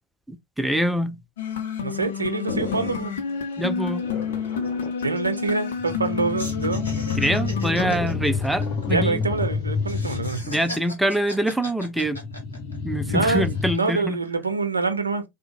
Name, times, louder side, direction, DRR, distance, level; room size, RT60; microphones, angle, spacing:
voice 1, 0.6-1.2 3.6-4.0 7.2-9.2 10.4-12.2 12.8-14.2, right 1 dB, ahead, 0.3 m, -24 dB
sound 1, 1.4-8.0, left 6 dB, 60° left, 0.6 m, -29 dB
voice 2, 1.8-3.2 5.0-6.9 8.9-10.6 13.1-15.2, right 3 dB, 80° right, 0.5 m, -26 dB
sound 2, 2.5-3.1 4.0-5.0 5.8-10.7 12.0-13.8, left 4 dB, 40° left, 1.2 m, -29 dB
sound 3, 3.6-3.7 3.9-4.1 4.5-6.1 6.4-9.5 9.8-13.0 13.4-14.0, left 1 dB, 80° left, 1.1 m, -39 dB
3.5 x 2.0 x 2.8 m
figure-of-eight pair, 90°, 0 cm